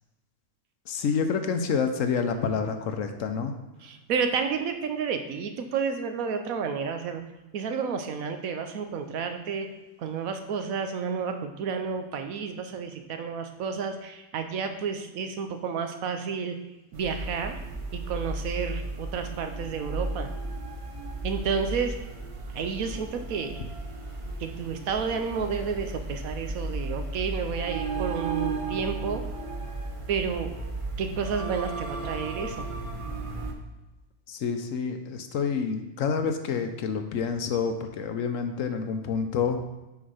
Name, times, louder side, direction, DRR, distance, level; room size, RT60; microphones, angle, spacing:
voice 1, 0.9-3.5 34.3-39.6, left 6 dB, 65° left, 7 dB, 1.0 m, -28 dB
voice 2, 3.8-7.2 7.5-9.7 10.0-16.6 16.9-17.6 17.9-20.3 21.2-22.0 22.5-23.6 24.4-29.2 30.1-30.5 31.0-32.7, right 6 dB, 70° right, 7 dB, 1.1 m, -31 dB
sound 1, 16.9-33.5, right 2 dB, 35° right, 0.6 m, -34 dB
6.0 x 5.0 x 5.6 m, 1.0 s
omnidirectional pair, 1.5 m